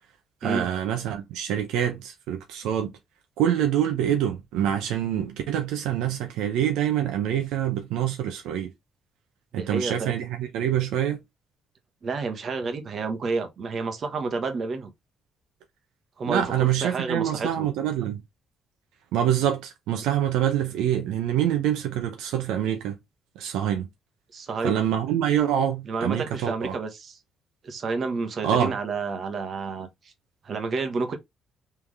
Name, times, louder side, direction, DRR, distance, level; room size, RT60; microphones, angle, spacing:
voice 1, 0.4-2.9 3.4-8.7 9.5-11.2 16.3-18.2 19.1-23.0 23.4-23.9 24.6-26.8 28.4-28.7, right 10 dB, 90° right, 0.7 m, -25 dB
voice 2, 9.5-10.1 12.0-14.9 16.2-17.7 24.3-24.8 25.9-27.2 27.6-29.9 30.4-31.2, right 4 dB, 55° right, 1.2 m, -30 dB
3.6 x 3.5 x 3.2 m
supercardioid pair, 70°, 0 cm